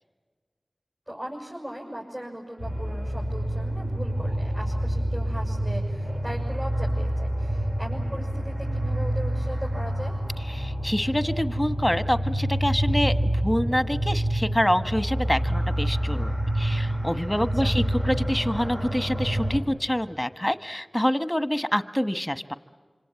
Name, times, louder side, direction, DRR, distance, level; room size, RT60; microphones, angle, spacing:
voice 1, 1.1-10.2 17.3-17.8, equal, 35° right, -3 dB, 7.1 m, -38 dB
sound 1, 2.6-19.6, right 1 dB, 65° right, 7.3 m, -27 dB
voice 2, 10.5-22.5, equal, 10° left, 11 dB, 1.2 m, -26 dB
26.0 x 26.0 x 8.8 m, 1.5 s
wide cardioid pair, 40°, 0 cm